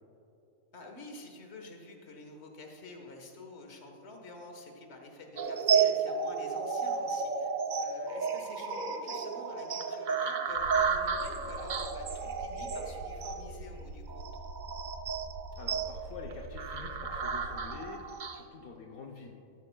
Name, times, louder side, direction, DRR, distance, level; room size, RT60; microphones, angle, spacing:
voice 1, 0.7-7.5 7.8-14.3, left 2 dB, 50° left, 3 dB, 1.5 m, -48 dB
sound 1, 5.4-18.4, right 5 dB, 55° right, 0.5 m, -32 dB
sound 2, 10.5-17.7, right 2 dB, 85° right, 1.8 m, -45 dB
voice 2, 15.6-19.4, left 4 dB, 75° left, 0 dB, 1.3 m, -47 dB
14.0 x 13.5 x 2.3 m, 2.8 s
omnidirectional pair, 1.5 m